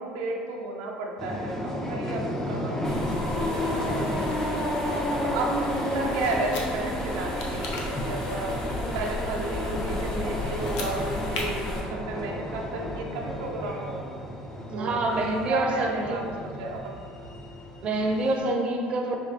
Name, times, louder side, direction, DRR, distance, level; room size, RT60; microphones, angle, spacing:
voice 1, 0.0-2.8 3.4-4.7 5.2-8.6 8.9-11.1 11.3-14.0 14.7-17.0, right 3 dB, 85° right, 0 dB, 0.5 m, -33 dB
sound 1, 1.2-18.4, left 1 dB, 15° left, 0.5 m, -32 dB
sound 2, 2.8-11.8, left 1 dB, 35° left, 1.5 m, -36 dB
sound 3, 6.2-6.7 7.4-7.8 10.5-10.9 11.3-11.4, left 4 dB, 85° left, 0.6 m, -35 dB
voice 2, 11.7-12.1 14.7-16.2 17.8-19.2, right 2 dB, 40° right, 1 dB, 0.6 m, -27 dB
5.1 x 2.5 x 3.3 m, 2.3 s
supercardioid pair, 115°, 3 cm